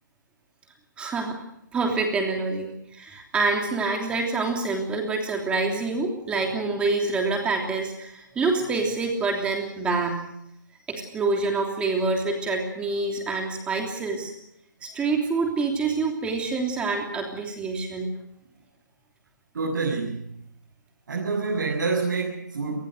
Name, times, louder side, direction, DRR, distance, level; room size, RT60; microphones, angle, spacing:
voice 1, 1.0-1.4 1.7-10.2 10.9-14.3 14.8-18.1, right 3 dB, 10° right, 2 dB, 3.1 m, -26 dB
voice 2, 19.5-20.3 21.1-22.9, right 4 dB, 65° right, -2 dB, 8.0 m, -27 dB
27.5 x 20.0 x 6.7 m, 0.76 s
hypercardioid pair, 155°, 10 cm